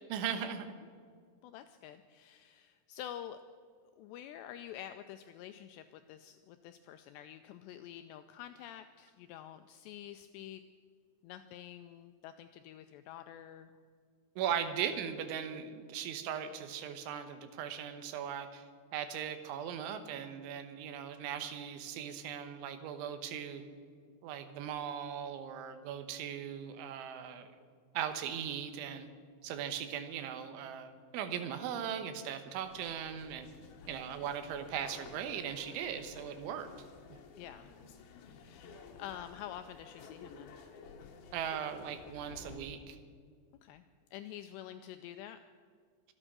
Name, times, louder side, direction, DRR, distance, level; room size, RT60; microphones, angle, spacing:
voice 1, 0.1-0.8 14.4-23.6 24.2-27.5 28.0-29.1 29.4-33.5 33.9-36.7 37.1-37.2 41.3-43.0, right 8 dB, 80° right, 9 dB, 3.5 m, -39 dB
voice 2, 1.4-3.4 4.0-10.6 11.2-13.8 33.8-34.0 37.4-37.8 38.0-40.6 43.6-43.8 44.1-45.5, left 11 dB, 85° left, 9 dB, 2.4 m, -48 dB
sound 1, 32.6-42.6, left 5 dB, 65° left, 2.7 m, -53 dB
25.5 x 8.9 x 6.2 m, 2.1 s
omnidirectional pair, 5.5 m